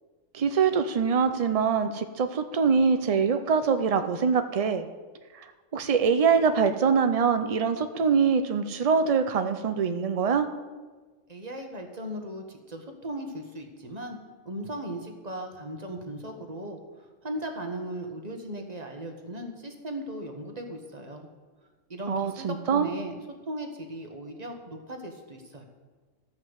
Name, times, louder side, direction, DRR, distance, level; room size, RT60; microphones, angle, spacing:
voice 1, 0.3-4.9 5.4-5.5 5.7-10.5 22.1-22.9, right 6 dB, 70° right, 8 dB, 0.3 m, -24 dB
voice 2, 11.3-14.2 14.4-21.3 21.9-23.2 23.5-25.6, right 1 dB, 30° right, 4 dB, 1.4 m, -37 dB
13.0 x 5.8 x 8.0 m, 1.3 s
omnidirectional pair, 1.4 m